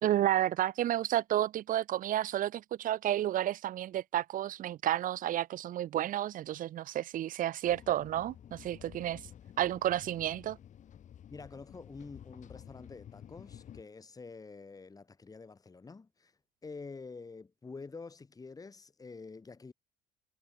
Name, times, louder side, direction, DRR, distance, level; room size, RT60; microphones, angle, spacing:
voice 1, 0.0-9.2 9.6-10.6, right 12 dB, 60° right, 1.3 m, -31 dB
sound 1, 7.7-13.8, left 9 dB, 50° left, 2.6 m, -52 dB
voice 2, 11.3-16.3 16.6-19.7, left 4 dB, 25° left, 2.9 m, -47 dB
supercardioid pair, 85°, 16 cm